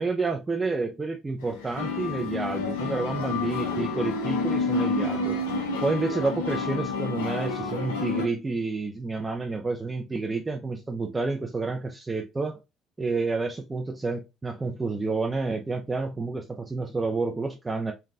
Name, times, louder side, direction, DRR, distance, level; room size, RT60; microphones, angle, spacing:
voice 1, 0.0-5.4 5.8-12.6 13.0-17.9, right 3 dB, 25° right, 0.4 m, -29 dB
sound 1, 1.4-8.3, left 4 dB, 85° left, 0.5 m, -29 dB
3.3 x 2.2 x 2.4 m
hypercardioid pair, 55°, 0 cm